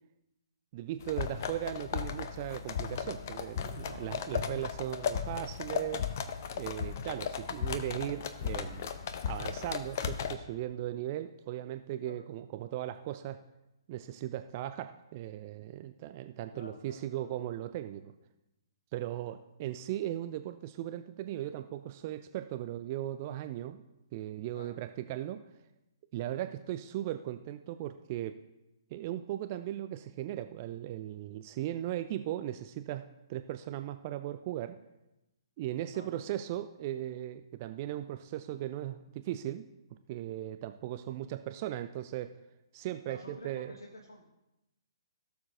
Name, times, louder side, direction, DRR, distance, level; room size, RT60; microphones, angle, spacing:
voice 1, 0.7-6.0 6.6-8.9 9.3-13.4 13.9-18.1 18.9-23.8 24.1-25.5 26.1-28.4 28.9-34.8 35.6-39.7 40.1-42.4 42.7-43.7, right 13 dB, 30° right, 10 dB, 0.3 m, -38 dB
sound 1, 1.0-10.3, left 7 dB, 40° left, 0.6 m, -36 dB
voice 2, 16.5-17.3 19.1-19.4 24.5-24.7 35.9-36.2 43.1-44.3, left 1 dB, 70° left, 0 dB, 1.2 m, -50 dB
16.5 x 6.9 x 2.6 m, 0.94 s
figure-of-eight pair, 125°, 2 cm